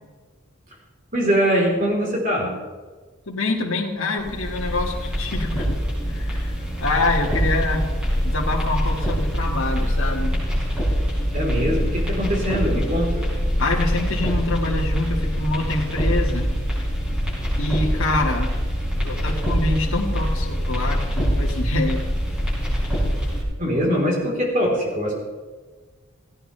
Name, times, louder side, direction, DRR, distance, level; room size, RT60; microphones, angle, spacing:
voice 1, 1.1-2.5 11.3-13.2 23.6-25.2, equal, 35° right, -2 dB, 3.8 m, -22 dB
voice 2, 3.3-5.7 6.1-7.9 8.2-10.3 13.6-16.5 17.6-18.5 19.0-22.1, left 2 dB, 60° left, -1 dB, 1.8 m, -26 dB
sound 1, 4.2-23.4, equal, 5° right, 5.1 m, -24 dB
17.5 x 16.0 x 3.3 m, 1.4 s
head